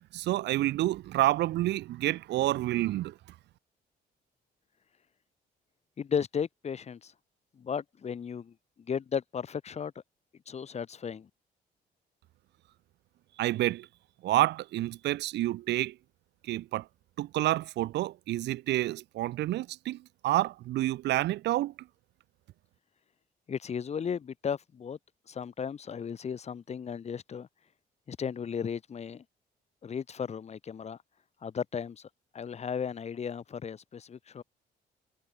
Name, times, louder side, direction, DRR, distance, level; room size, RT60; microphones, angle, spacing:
voice 1, 0.1-3.1 13.4-13.9 14.2-15.9 16.5-16.9 17.2-21.7, right 15 dB, 80° right, 0.8 m, -29 dB
voice 2, 6.0-7.1 7.6-8.5 8.9-9.9 10.5-11.3 23.5-25.0 25.3-27.5 28.1-29.2 29.8-31.0 31.4-32.0 32.3-34.4, left 7 dB, 40° left, 2.2 m, -35 dB
cardioid pair, 130°, 18 cm